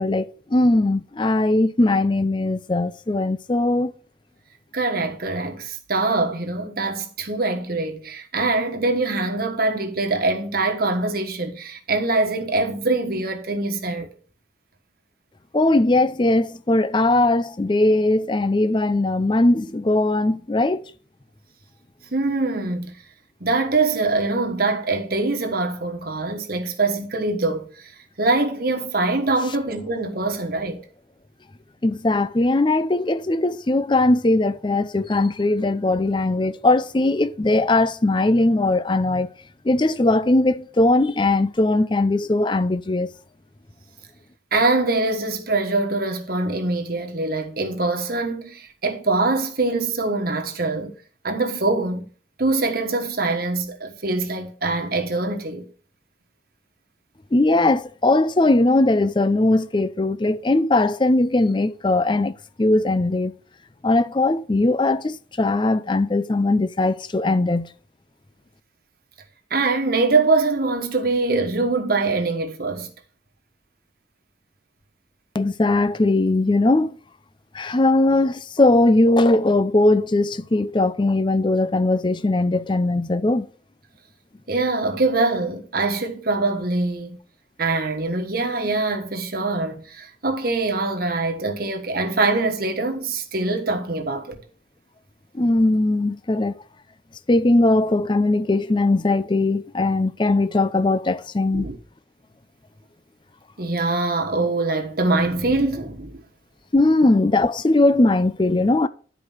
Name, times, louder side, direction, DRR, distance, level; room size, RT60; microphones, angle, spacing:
voice 1, 0.0-3.9 15.5-20.8 31.8-39.3 39.6-43.1 57.3-63.3 63.8-67.7 75.3-76.9 77.5-83.5 95.3-96.5 97.3-101.7 106.7-108.9, left 2 dB, 25° left, 0.5 m, -19 dB
voice 2, 4.7-14.1 22.1-22.9 23.4-27.7 28.2-30.8 44.5-50.9 51.2-52.0 52.4-55.7 69.5-72.9 84.5-87.2 87.6-94.4 101.5-101.8 103.6-106.2, right 3 dB, 50° right, 1.4 m, -23 dB
11.0 x 4.9 x 5.5 m
head